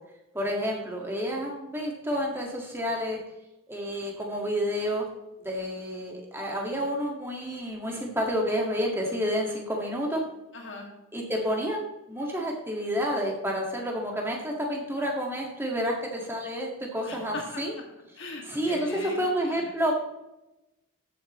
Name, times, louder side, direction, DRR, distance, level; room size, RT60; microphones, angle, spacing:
voice 1, 0.3-3.2 3.7-5.1 5.4-10.2 11.1-17.7 18.5-20.0, equal, 10° right, -1 dB, 1.9 m, -29 dB
voice 2, 10.5-10.9 17.0-17.8 18.2-19.6, left 1 dB, 55° left, 0 dB, 2.3 m, -38 dB
14.5 x 7.5 x 3.1 m, 0.95 s
head